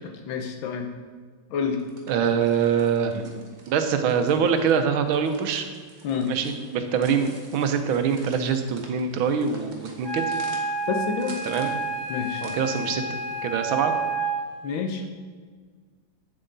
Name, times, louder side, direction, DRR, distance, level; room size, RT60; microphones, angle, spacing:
voice 1, 0.3-0.9 1.5-1.8 6.0-6.3 10.9-11.3 12.1-12.4 14.6-15.0, left 6 dB, 80° left, 4 dB, 1.7 m, -28 dB
sound 1, 1.7-13.0, right 2 dB, 30° right, 1.0 m, -48 dB
voice 2, 2.1-3.4 3.7-5.7 6.3-10.4 11.4-11.7 12.4-13.9, right 6 dB, 90° right, 7 dB, 1.6 m, -24 dB
Wind instrument woodwind instrument, 10.0-14.6, right 3 dB, 15° left, 1.3 m, -29 dB
8.0 x 7.6 x 3.9 m, 1.6 s
omnidirectional pair, 2.1 m